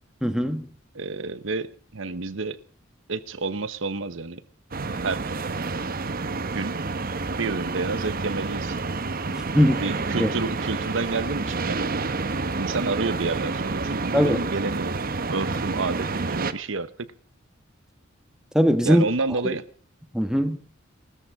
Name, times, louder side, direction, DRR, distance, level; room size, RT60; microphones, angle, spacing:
voice 1, 0.2-0.7 9.5-9.8 10.2-10.3 14.1-14.4 18.5-19.1 20.1-20.6, equal, 5° right, 8 dB, 1.4 m, -20 dB
voice 2, 0.9-2.6 3.1-4.4 5.0-5.3 6.5-6.8 7.4-8.8 9.6-11.9 12.6-15.0 15.3-17.1 18.8-19.6, right 3 dB, 85° right, 13 dB, 1.0 m, -29 dB
sound 1, 4.7-16.5, right 3 dB, 50° right, 1.0 m, -29 dB
18.5 x 14.0 x 4.8 m, 0.40 s
head